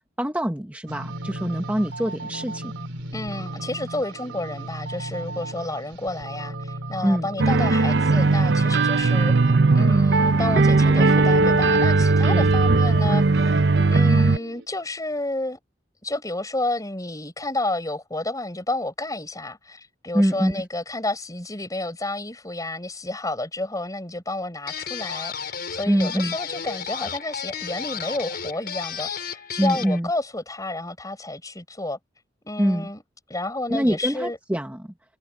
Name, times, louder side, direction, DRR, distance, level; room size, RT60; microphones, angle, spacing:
voice 1, 0.2-2.7 7.0-7.3 12.3-12.5 20.1-20.6 25.9-26.3 29.6-30.1 32.6-32.9 33.7-34.9, equal, 10° right, 1.5 m, -24 dB
sound 1, 0.9-14.7, right 2 dB, 85° right, 3.6 m, -37 dB
voice 2, 3.1-15.6 16.0-32.0 32.4-33.0 33.3-34.4, left 2 dB, 20° left, 5.5 m, -31 dB
sound 2, 7.4-14.4, right 3 dB, 65° right, 0.8 m, -18 dB
sound 3, 24.7-30.0, left 7 dB, 55° left, 6.0 m, -33 dB
head